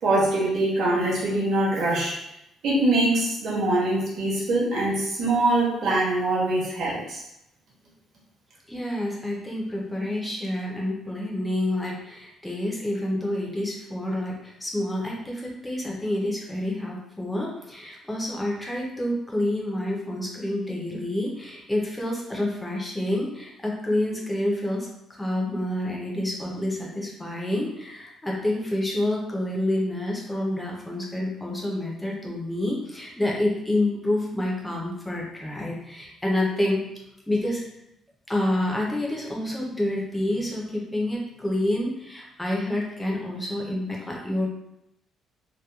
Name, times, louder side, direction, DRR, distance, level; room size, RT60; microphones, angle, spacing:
voice 1, 0.0-2.1 2.6-7.2, right 2 dB, 50° right, -6 dB, 0.9 m, -23 dB
voice 2, 8.7-24.9 25.2-36.8 37.3-37.6 38.3-44.5, left 1 dB, 5° left, -2 dB, 0.4 m, -28 dB
2.8 x 2.1 x 2.2 m, 0.82 s
cardioid pair, 170°, 0 cm